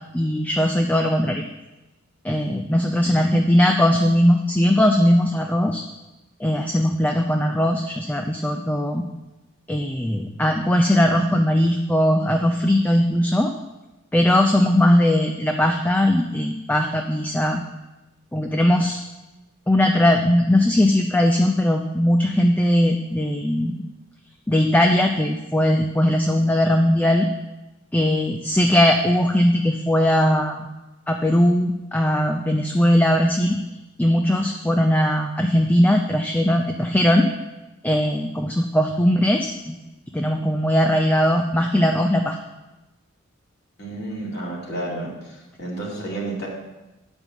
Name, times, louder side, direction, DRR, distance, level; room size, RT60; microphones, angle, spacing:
voice 1, 0.1-1.4 2.2-5.8 6.4-9.0 9.7-13.5 14.1-17.6 18.3-19.0 19.7-23.7 24.5-27.3 27.9-30.6 31.1-33.6 34.0-37.3 37.8-39.8 40.1-42.4, left 1 dB, 10° left, 3 dB, 0.5 m, -19 dB
voice 2, 43.8-46.5, right 2 dB, 50° left, -5 dB, 2.8 m, -31 dB
9.2 x 5.3 x 7.1 m, 1.0 s
head